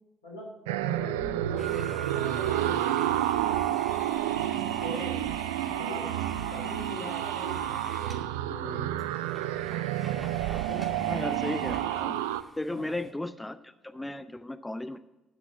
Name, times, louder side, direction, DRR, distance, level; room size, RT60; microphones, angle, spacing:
voice 1, 0.2-0.5 0.8-3.9 4.8-5.2 5.7-9.1 10.7-11.0 11.5-11.6 12.7-13.0, left 1 dB, 85° left, -1 dB, 2.9 m, -42 dB
sound 1, 0.7-12.4, right 13 dB, 75° right, 0.4 m, -30 dB
sound 2, 1.6-8.3 8.7-8.8 9.0-13.1, right 1 dB, 15° right, 2.5 m, -46 dB
voice 2, 11.1-12.2 12.6-15.0, left 1 dB, 10° left, 12 dB, 0.6 m, -35 dB
11.5 x 6.0 x 7.1 m, 1.1 s
figure-of-eight pair, 50°, 0 cm